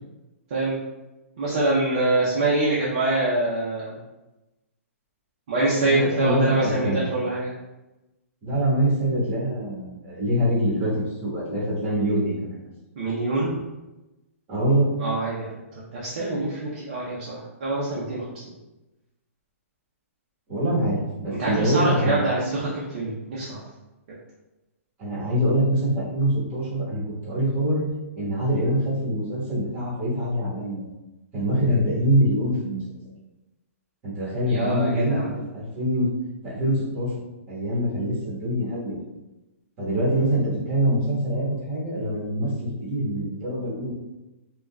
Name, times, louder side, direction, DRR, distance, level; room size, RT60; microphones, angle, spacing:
voice 1, 1.4-4.0 5.5-7.5 13.0-13.6 15.0-15.5 15.9-18.5 21.3-23.6 34.4-35.3, right 2 dB, 35° right, -7 dB, 0.6 m, -25 dB
voice 2, 5.8-7.0 8.4-12.6 14.5-14.9 20.5-22.3 25.0-27.8 28.1-30.8 31.3-32.8 34.0-36.1 36.4-37.1 37.5-39.0 39.8-43.9, equal, 20° right, -8 dB, 1.2 m, -24 dB
3.7 x 2.2 x 2.2 m, 1.0 s
hypercardioid pair, 175°, 8 cm